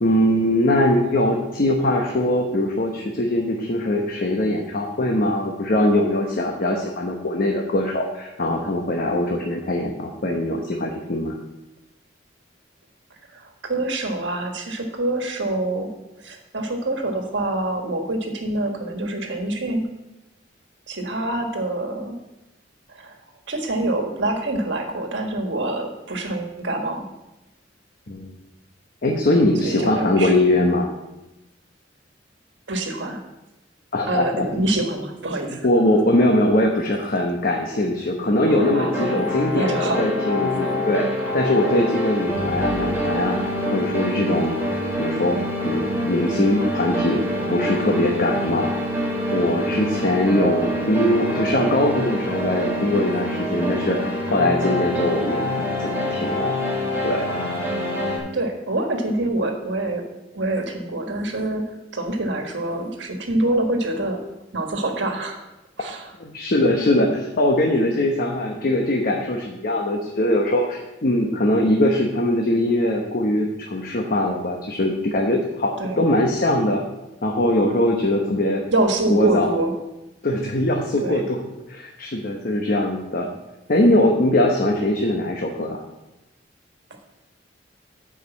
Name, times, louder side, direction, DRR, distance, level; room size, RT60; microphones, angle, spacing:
voice 1, 0.0-11.3 28.1-28.3 29.0-30.9 33.9-34.4 35.6-41.1 41.3-43.4 43.7-44.5 45.0-45.4 45.6-47.2 47.5-48.7 49.3-55.4 55.8-56.5 57.0-57.3 66.2-76.8 77.2-78.6 79.1-79.5 80.2-81.4 81.7-83.3 83.7-85.8, left 1 dB, 50° left, 1 dB, 1.0 m, -21 dB
voice 2, 13.3-19.8 20.9-22.2 22.9-23.1 23.5-27.1 29.6-30.3 32.7-33.2 34.1-35.7 38.7-39.2 39.5-40.0 47.3-47.5 58.3-60.0 60.3-64.2 64.5-65.4 65.8-66.1 75.8-76.0 78.7-79.7 81.0-81.2, right 2 dB, 70° right, 3 dB, 1.5 m, -26 dB
sound 1, 38.5-58.2, equal, 15° right, 3.1 m, -26 dB
9.6 x 5.0 x 7.1 m, 0.98 s
head